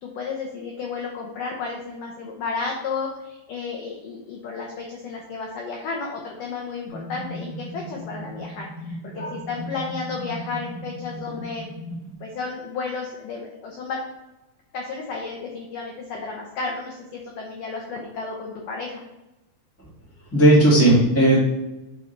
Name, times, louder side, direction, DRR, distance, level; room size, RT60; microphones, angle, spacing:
voice 1, 0.0-11.7 12.2-14.0 14.7-19.0, left 4 dB, 85° left, -1 dB, 1.8 m, -32 dB
sound 1, 6.9-12.1, right 1 dB, 45° left, 2.6 m, -37 dB
voice 2, 20.3-21.4, right 1 dB, 5° left, -7 dB, 1.2 m, -16 dB
8.2 x 3.9 x 4.6 m, 0.98 s
omnidirectional pair, 5.0 m